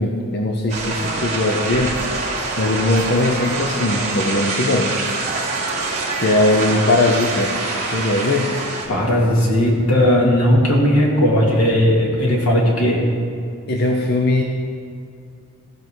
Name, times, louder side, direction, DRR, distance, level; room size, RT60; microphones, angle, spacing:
voice 1, 0.0-1.9 2.6-4.9 6.2-7.5 7.8-8.5 13.7-14.4, left 2 dB, 45° left, 1 dB, 0.7 m, -19 dB
sound 1, 0.7-8.9, right 3 dB, 30° right, 1.7 m, -25 dB
voice 2, 8.9-13.0, equal, 85° left, -2 dB, 2.2 m, -16 dB
14.5 x 5.3 x 6.2 m, 2.4 s
head